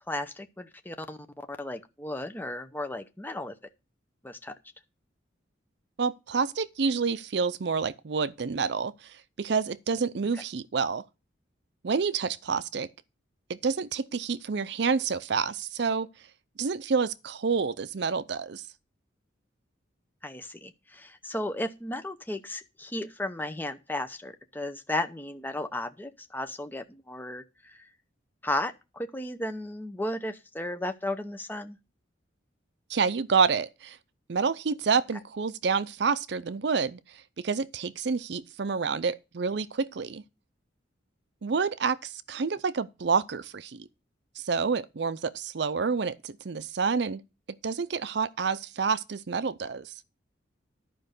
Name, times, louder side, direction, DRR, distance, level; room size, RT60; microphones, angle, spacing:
voice 1, 0.1-1.2 1.5-3.5 4.2-4.5 20.2-27.9 28.4-31.8, left 1 dB, 10° left, 0.7 m, -34 dB
voice 2, 6.0-8.9 9.4-11.0 11.8-12.9 13.5-16.1 16.6-18.6 32.9-34.0 34.3-37.0 37.4-40.2 41.4-43.9 44.4-47.2 47.6-49.9, right 5 dB, 60° right, 0.5 m, -28 dB
11.0 x 5.3 x 6.6 m
head